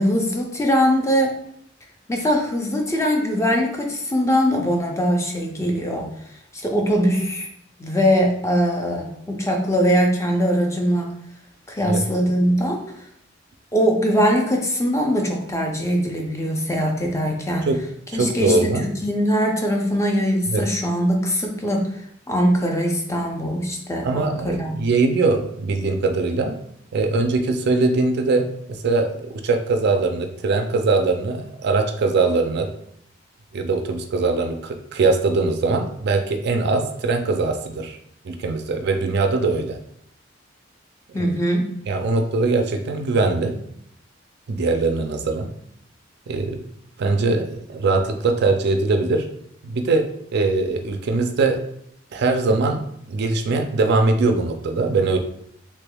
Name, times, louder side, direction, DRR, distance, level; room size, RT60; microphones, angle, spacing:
voice 1, 0.0-1.4 2.1-6.1 6.6-7.5 7.8-11.2 11.7-12.8 13.7-17.7 18.1-21.9 22.3-24.7 41.1-41.8, equal, 15° left, 1 dB, 0.5 m, -21 dB
voice 2, 18.1-18.9 20.5-20.6 24.0-26.6 26.9-32.7 33.5-38.0 38.2-39.8 41.1-41.3 41.9-43.6 44.5-45.5 46.3-46.6 47.0-49.3 49.6-50.1 50.3-51.6 52.1-52.8 53.1-55.2, right 3 dB, 55° right, 5 dB, 0.4 m, -21 dB
3.3 x 3.1 x 2.2 m, 0.70 s
head